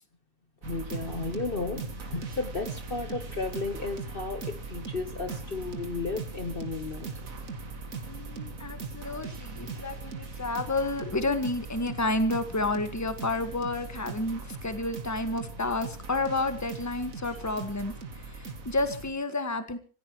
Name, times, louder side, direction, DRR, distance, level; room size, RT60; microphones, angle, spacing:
voice 1, 0.6-7.1, left 3 dB, 40° left, 7 dB, 1.4 m, -34 dB
sound 1, 0.6-19.1, right 4 dB, 65° right, 2.3 m, -39 dB
voice 2, 8.1-19.8, left 2 dB, 10° left, 9 dB, 1.5 m, -30 dB
26.5 x 16.0 x 3.1 m, 0.39 s
omnidirectional pair, 1.5 m